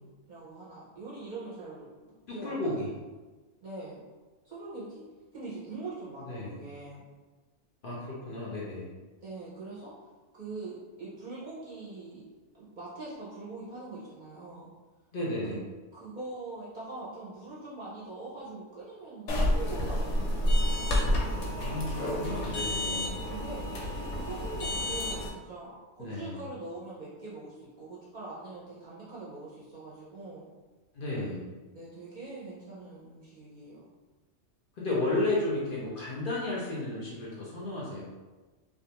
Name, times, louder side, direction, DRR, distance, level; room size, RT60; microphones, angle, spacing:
voice 1, 0.0-2.9 3.6-4.0 4.4-5.0 5.3-7.0 9.2-9.9 10.3-12.3 12.5-14.7 15.5-15.6 15.9-20.9 22.8-23.6 24.1-30.5 31.7-33.9, right 3 dB, 50° right, -8 dB, 0.6 m, -43 dB
voice 2, 2.3-2.9 6.3-6.6 7.8-8.9 15.1-15.7 21.5-23.2 26.0-26.5 30.9-31.5 34.8-38.0, left 2 dB, 55° left, -6 dB, 0.6 m, -33 dB
sound 1, 19.3-25.3, left 1 dB, 80° left, 0.9 m, -29 dB
2.4 x 2.3 x 2.8 m, 1.3 s
omnidirectional pair, 1.2 m